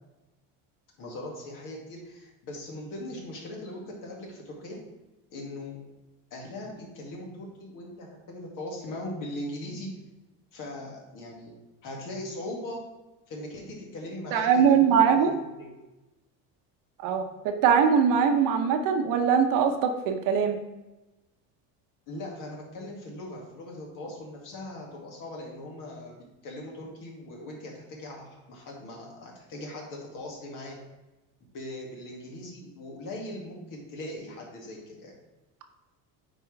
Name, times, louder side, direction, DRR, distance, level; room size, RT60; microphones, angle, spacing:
voice 1, 1.0-4.8 5.3-5.8 6.3-9.9 10.5-11.5 11.8-12.8 13.3-15.7 22.1-26.1 26.4-30.8 31.5-35.1, left 1 dB, 55° left, -1 dB, 2.2 m, -40 dB
voice 2, 14.3-15.3 17.0-20.6, right 7 dB, 55° right, 6 dB, 0.9 m, -22 dB
8.8 x 4.6 x 3.3 m, 1.0 s
cardioid pair, 140°, 39 cm